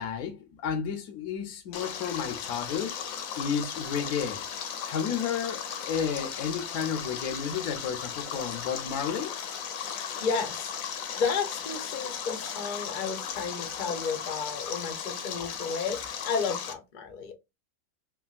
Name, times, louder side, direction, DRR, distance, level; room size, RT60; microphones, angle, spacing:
voice 1, 0.0-3.0 3.4-4.4 4.8-9.3, left 7 dB, 90° left, 1.1 m, -32 dB
Stream, 1.7-16.7, left 8 dB, 70° left, 0.9 m, -36 dB
voice 2, 9.9-17.3, left 5 dB, 55° left, 0.5 m, -33 dB
3.3 x 2.3 x 2.3 m
omnidirectional pair, 1.6 m